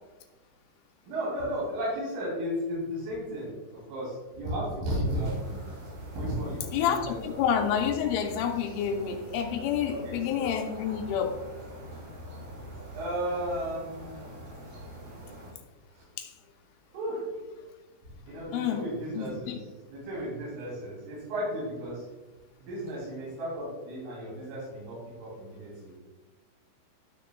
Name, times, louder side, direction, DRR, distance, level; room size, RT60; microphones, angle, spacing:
voice 1, 1.1-5.7 6.1-7.4 9.9-10.5 12.9-14.3 15.9-16.1 16.9-17.3 18.3-19.5 19.9-22.0 22.6-26.0, equal, 90° right, -6 dB, 5.5 m, -34 dB
sound 1, 5.0-15.5, equal, 55° right, 3.9 m, -44 dB
voice 2, 6.7-11.3 16.2-16.3 18.5-18.8 19.1-19.5, left 8 dB, 85° left, 3 dB, 3.1 m, -28 dB
12.5 x 6.2 x 2.3 m, 1.2 s
omnidirectional pair, 5.6 m